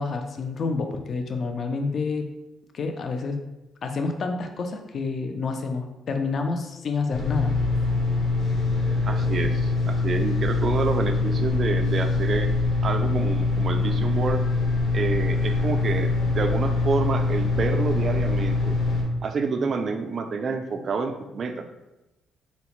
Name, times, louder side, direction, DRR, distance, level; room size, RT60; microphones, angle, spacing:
voice 1, 0.0-2.3 2.7-3.4 3.8-7.6, left 4 dB, 45° left, 5 dB, 0.3 m, -28 dB
sound 1, 7.1-19.0, left 3 dB, 65° left, 1.0 m, -24 dB
voice 2, 9.1-12.5 12.8-14.4 14.9-18.8 19.2-21.6, right 4 dB, 40° right, 7 dB, 0.3 m, -28 dB
3.9 x 2.1 x 2.9 m, 0.98 s
cardioid pair, 130°, 0 cm